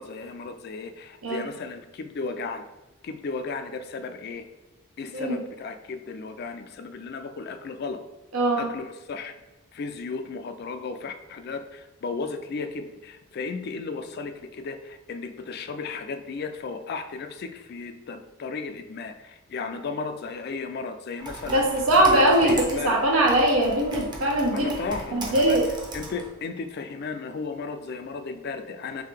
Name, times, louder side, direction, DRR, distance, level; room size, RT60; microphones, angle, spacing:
voice 1, 0.0-2.6 3.0-4.5 5.0-8.0 8.6-9.4 9.7-21.7 22.1-23.0 24.5-25.6 25.9-29.0, left 4 dB, 50° left, 8 dB, 0.3 m, -34 dB
voice 2, 8.3-8.7 21.5-24.7 25.1-25.6, right 1 dB, 90° right, 0 dB, 1.0 m, -21 dB
Computer keyboard, 21.2-26.3, right 2 dB, 20° right, 0.6 m, -37 dB
3.7 x 3.2 x 3.3 m, 1.0 s
head